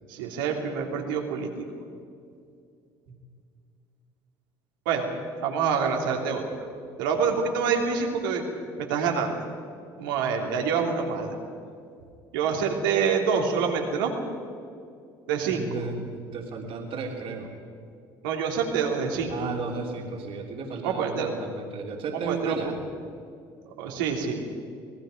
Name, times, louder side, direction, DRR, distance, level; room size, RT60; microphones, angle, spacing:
voice 1, 0.1-1.6 4.8-5.1 5.4-6.4 7.0-8.4 8.8-9.4 10.0-11.4 12.3-14.1 15.3-15.6 18.2-19.3 20.8-21.3 22.2-22.6 23.8-24.5, right 6 dB, 80° right, 1 dB, 3.0 m, -26 dB
voice 2, 15.4-17.5 19.3-22.8, right 4 dB, 55° right, 0 dB, 3.3 m, -34 dB
27.0 x 19.0 x 5.2 m, 2.4 s
hypercardioid pair, 65°, 11 cm